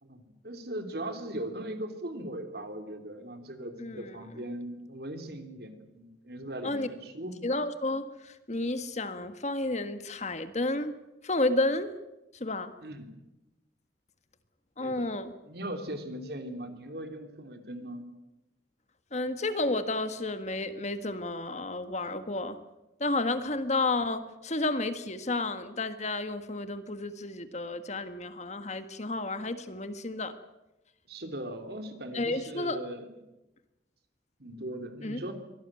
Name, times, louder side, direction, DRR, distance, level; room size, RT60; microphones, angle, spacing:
voice 1, 0.0-7.6 12.8-13.2 14.8-15.1 15.4-18.1 31.1-33.1 34.4-35.3, right 1 dB, 60° right, 6 dB, 3.3 m, -39 dB
voice 2, 3.8-4.2 6.6-6.9 7.4-11.0 11.2-11.9 12.3-12.7 14.8-15.3 19.1-22.6 23.0-30.3 32.1-32.8 35.0-35.3, left 2 dB, 40° left, 10 dB, 1.6 m, -31 dB
24.0 x 18.5 x 9.0 m, 0.99 s
head